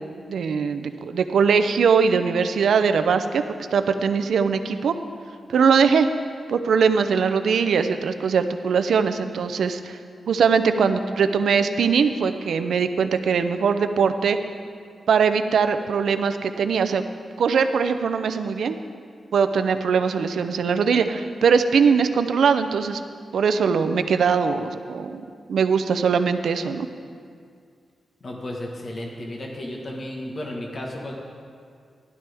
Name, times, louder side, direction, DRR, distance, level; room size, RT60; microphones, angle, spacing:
voice 1, 0.3-3.4 3.7-5.0 5.5-6.1 6.5-10.0 10.3-14.4 15.1-17.0 17.4-18.8 19.3-23.0 23.3-25.2 25.5-26.9, right 6 dB, 80° right, 9 dB, 0.6 m, -21 dB
voice 2, 28.2-31.1, left 1 dB, 40° left, -1 dB, 1.4 m, -33 dB
15.0 x 11.5 x 3.5 m, 2.2 s
wide cardioid pair, 165°, 0 cm